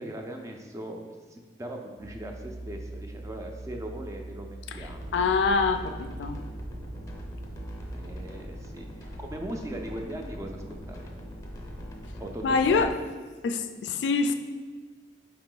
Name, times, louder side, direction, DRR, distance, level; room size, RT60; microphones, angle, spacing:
voice 1, 0.0-5.0 7.9-11.1 12.2-12.9, right 1 dB, 20° right, 3 dB, 0.4 m, -39 dB
sound 1, 2.0-8.2, right 2 dB, 75° right, 0.6 m, -41 dB
sound 2, 4.8-12.9, equal, 20° left, 0.6 m, -41 dB
voice 2, 5.1-6.4 12.4-12.9 13.4-14.3, left 4 dB, 75° left, 9 dB, 0.3 m, -25 dB
4.7 x 2.9 x 3.8 m, 1.4 s
head